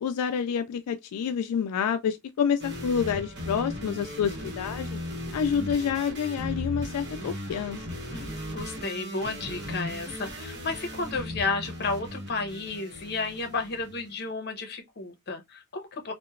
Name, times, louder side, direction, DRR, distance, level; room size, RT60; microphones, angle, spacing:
voice 1, 0.0-5.0 5.3-7.8, left 7 dB, 85° left, 0.3 m, -28 dB
sound 1, 2.6-14.1, left 1 dB, 50° right, 1.0 m, -37 dB
voice 2, 8.1-16.1, left 3 dB, 45° left, 0.7 m, -32 dB
2.9 x 2.1 x 2.3 m
head